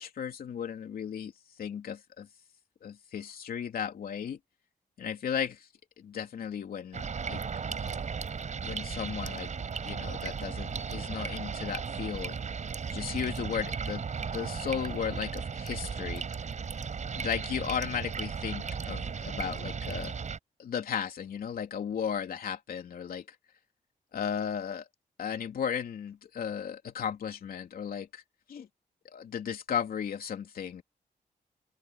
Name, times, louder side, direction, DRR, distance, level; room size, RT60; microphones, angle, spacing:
voice 1, 0.0-1.3 1.6-2.3 2.8-4.4 5.0-5.7 6.0-7.4 7.9-8.0 8.6-9.5 9.8-12.4 12.9-14.0 14.3-16.3 17.2-20.2 20.6-23.3 24.1-24.9 25.2-28.2 28.5-28.7 29.0-30.8, left 8 dB, 80° left, 3.3 m, -35 dB
sound 1, 6.9-20.4, right 6 dB, 55° right, 6.3 m, -36 dB
open air
wide cardioid pair, 115°, 15 cm